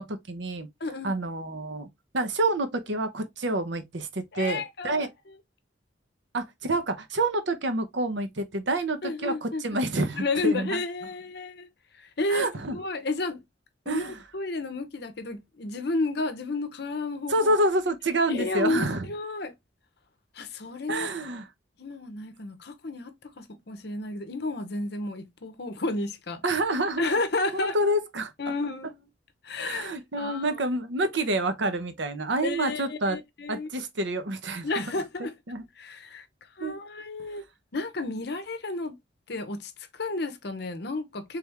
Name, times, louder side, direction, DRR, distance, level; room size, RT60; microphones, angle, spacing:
voice 1, 0.0-0.7 1.0-1.9 2.1-5.1 6.3-10.8 12.3-12.8 13.9-14.1 17.3-19.1 20.9-21.5 26.4-27.1 27.5-28.3 29.6-33.2 33.5-34.8 35.5-35.6 36.6-36.8, right 1 dB, 70° right, 0.8 m, -28 dB
voice 2, 0.8-1.1 4.3-5.4 9.0-9.6 10.1-11.7 12.0-13.4 13.9-17.5 18.3-19.5 20.3-21.1 21.8-26.4 27.0-27.9 28.4-28.9 29.4-30.6 32.4-33.7 34.6-35.3 35.8-36.3 36.6-37.4 37.7-38.9 39.3-41.4, left 2 dB, 55° left, 0.7 m, -32 dB
3.4 x 3.3 x 3.4 m
head